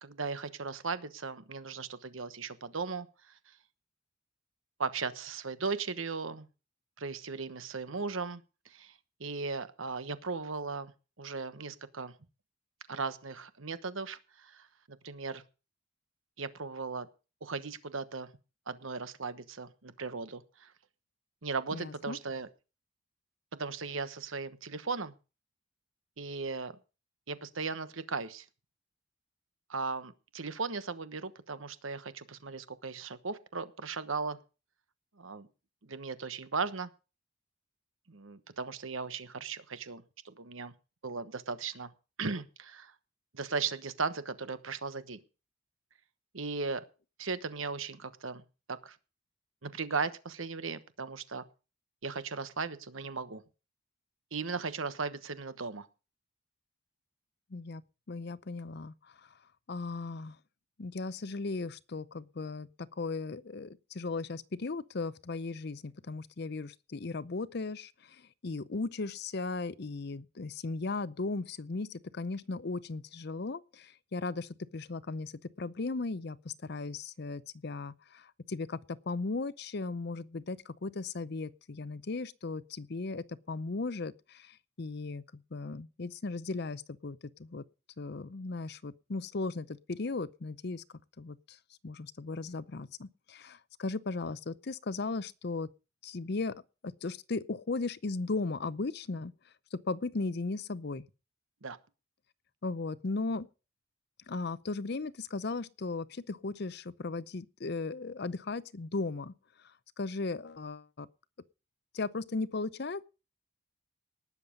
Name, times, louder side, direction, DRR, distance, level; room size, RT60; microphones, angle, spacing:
voice 1, 0.0-3.5 4.8-6.5 7.0-8.9 9.2-10.9 11.2-12.1 12.9-15.4 16.4-17.1 17.4-18.3 18.7-20.7 21.4-22.5 23.5-25.1 26.2-26.8 27.3-28.5 29.7-34.4 35.2-35.5 35.8-36.9 38.1-40.7 41.0-41.9 42.2-42.9 43.3-45.2 46.3-46.8 47.2-49.0 49.6-51.4 52.0-53.4 54.3-55.9 101.6-101.8, right 4 dB, 80° right, 1.2 m, -37 dB
voice 2, 21.7-22.2 57.5-57.8 58.1-58.9 59.7-60.4 60.8-75.3 75.6-87.6 88.0-90.8 91.2-91.6 91.8-95.7 96.0-96.6 96.8-99.3 99.7-101.1 102.6-103.5 104.3-109.3 110.0-111.1 111.9-113.0, left 3 dB, 55° left, 0.6 m, -37 dB
19.0 x 7.4 x 5.2 m
head